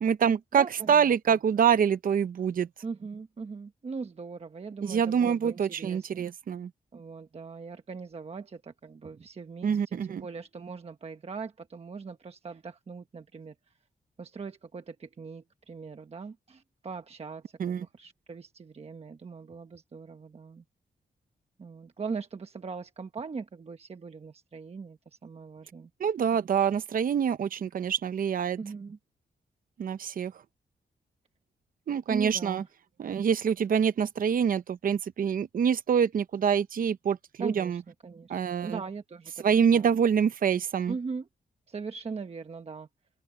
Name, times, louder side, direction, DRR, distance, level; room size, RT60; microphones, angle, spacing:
voice 1, 0.0-2.7 4.8-6.7 9.6-10.2 17.6-17.9 26.0-28.6 29.8-30.3 31.9-32.6 33.0-37.8 38.3-38.8 39.4-40.9, right 7 dB, 60° right, 0.7 m, -26 dB
voice 2, 0.6-1.1 2.8-6.2 6.9-13.5 14.2-20.6 21.6-25.9 28.6-29.0 32.1-32.7 37.4-39.9 40.9-41.3 41.7-42.9, right 5 dB, 40° right, 1.2 m, -40 dB
open air
wide cardioid pair, 115°, 17 cm